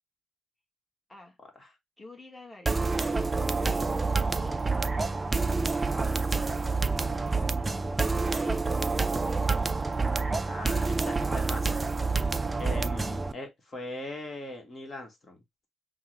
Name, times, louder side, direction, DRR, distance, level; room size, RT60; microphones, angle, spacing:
voice 1, 2.0-2.9 3.4-3.9 4.2-5.3 6.2-6.5 6.8-7.9 8.2-9.6, left 2 dB, 10° left, 1.1 m, -50 dB
sound 1, 2.7-13.3, right 3 dB, 20° right, 0.3 m, -28 dB
voice 2, 10.5-11.8 12.1-12.3 12.5-15.4, left 2 dB, 40° left, 1.2 m, -40 dB
5.5 x 2.0 x 3.0 m
cardioid pair, 90°, 0 cm